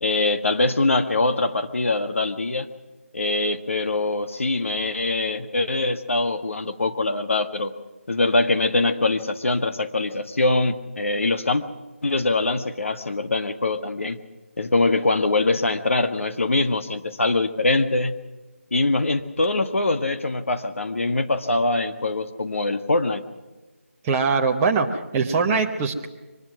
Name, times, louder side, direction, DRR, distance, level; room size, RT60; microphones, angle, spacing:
voice 1, 0.0-2.7 3.1-7.7 8.1-11.6 12.0-14.2 14.6-18.1 18.7-23.2, left 2 dB, 65° left, 8 dB, 1.6 m, -23 dB
voice 2, 24.0-26.1, right 4 dB, 10° right, 1 dB, 0.8 m, -22 dB
23.5 x 19.5 x 6.1 m, 1.2 s
figure-of-eight pair, 170°, 8 cm